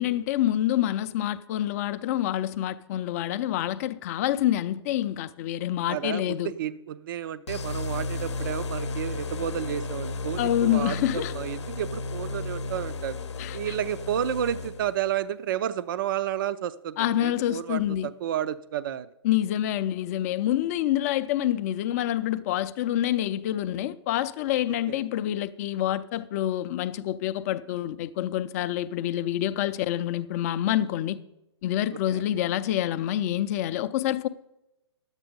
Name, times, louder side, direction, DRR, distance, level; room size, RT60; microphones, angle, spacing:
voice 1, 0.0-6.5 10.4-11.3 13.4-13.7 17.0-18.1 19.2-31.2 31.6-34.3, left 12 dB, 35° left, 0.5 m, -27 dB
voice 2, 5.9-13.2 13.5-19.1 24.9-25.0 32.1-32.2, right 10 dB, 50° right, 0.5 m, -31 dB
sound 1, 7.5-15.1, left 3 dB, 75° left, 0.7 m, -33 dB
11.0 x 8.1 x 5.2 m
figure-of-eight pair, 130°, 15 cm